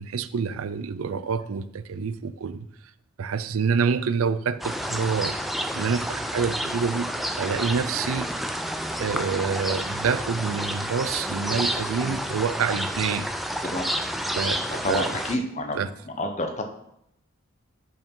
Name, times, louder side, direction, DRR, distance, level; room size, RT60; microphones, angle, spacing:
voice 1, 0.0-2.7 3.2-5.4 5.7-7.1 7.4-8.3 9.0-13.3 14.4-14.6 14.9-15.1 15.7-15.9, right 5 dB, 90° right, 0.5 m, -27 dB
sound 1, 4.6-15.4, equal, ahead, 0.4 m, -30 dB
voice 2, 14.7-16.6, left 1 dB, 35° left, 0.9 m, -29 dB
8.2 x 4.8 x 5.4 m
head